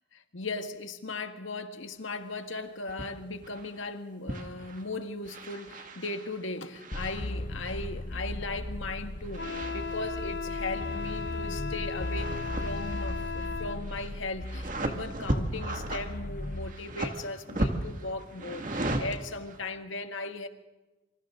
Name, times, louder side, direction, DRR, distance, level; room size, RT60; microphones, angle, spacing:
voice 1, 0.1-20.5, left 2 dB, 75° left, 7 dB, 1.9 m, -37 dB
sound 1, 2.9-3.1 3.4-3.9 4.3-4.9 5.3-7.9 9.2-10.3 10.6-11.6 11.8-19.6, right 1 dB, 40° right, 2.1 m, -37 dB
sound 2, 6.9-16.7, left 1 dB, 40° left, 0.9 m, -37 dB
Wind instrument woodwind instrument, 9.3-13.8, left 5 dB, 60° left, 1.2 m, -36 dB
28.0 x 25.5 x 3.9 m, 1.1 s
head